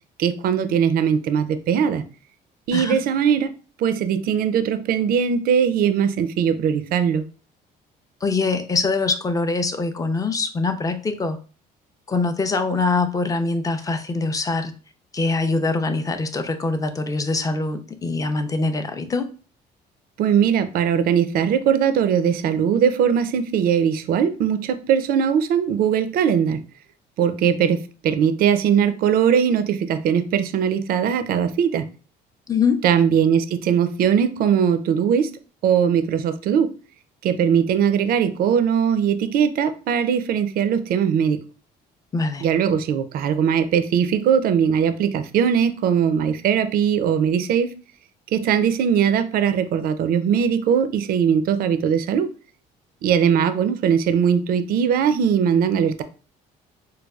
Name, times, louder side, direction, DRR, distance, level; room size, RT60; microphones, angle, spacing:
voice 1, 0.2-2.0 2.7-7.2 20.2-26.6 27.2-31.9 32.8-36.7 37.2-41.4 42.4-47.7 48.3-52.3 53.0-56.0, right 8 dB, 60° right, 0.4 m, -20 dB
voice 2, 8.2-11.4 12.1-14.7 15.1-19.3 32.5-32.8 42.1-42.5, left 3 dB, 20° left, 0.4 m, -23 dB
4.6 x 2.3 x 2.3 m
cardioid pair, 110°, 17 cm